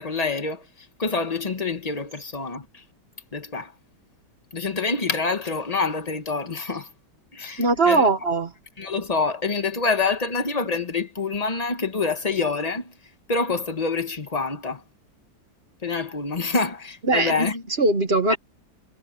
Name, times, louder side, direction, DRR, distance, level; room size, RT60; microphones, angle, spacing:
voice 1, 0.0-2.8 3.3-3.7 4.5-6.9 7.3-8.0 8.8-12.9 13.3-14.8 15.8-17.5 18.3-18.4, left 4 dB, 25° left, 1.2 m, -26 dB
voice 2, 7.6-8.5 17.1-18.4, right 3 dB, 35° right, 1.5 m, -21 dB
omnidirectional pair, 2.1 m